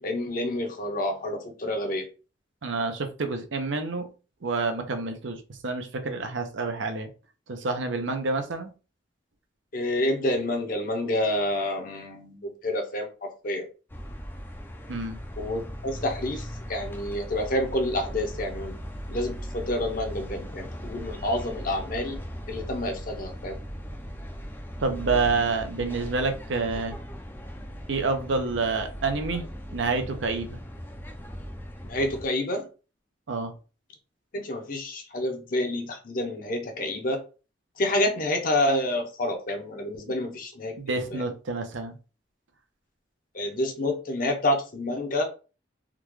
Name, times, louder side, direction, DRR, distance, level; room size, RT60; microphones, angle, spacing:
voice 1, 0.0-2.1 9.7-13.7 15.4-18.7 19.1-22.2 22.5-23.6 31.8-32.7 34.3-37.2 37.8-41.2 43.3-45.2, left 1 dB, 45° left, 4 dB, 0.7 m, -28 dB
voice 2, 2.6-4.1 4.4-7.1 7.5-8.7 14.9-15.2 24.8-27.0 27.9-30.6 33.3-33.5 40.8-42.0, right 3 dB, 80° right, 6 dB, 0.7 m, -28 dB
sound 1, 13.9-32.3, equal, 10° left, 0.4 m, -38 dB
3.7 x 2.3 x 3.1 m, 0.33 s
head